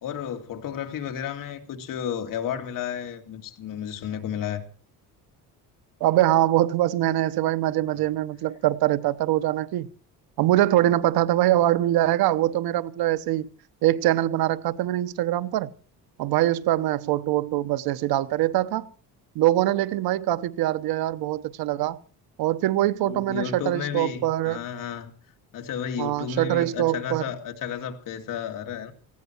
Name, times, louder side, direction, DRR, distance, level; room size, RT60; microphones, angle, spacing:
voice 1, 0.0-4.6 23.0-25.1 25.5-28.9, left 8 dB, 65° left, 2.4 m, -32 dB
voice 2, 6.0-9.9 10.4-13.5 13.8-15.7 16.2-18.9 19.3-22.0 22.4-24.6 26.0-27.2, right 14 dB, 85° right, 1.0 m, -23 dB
18.5 x 15.5 x 4.5 m
cardioid pair, 150°, 36 cm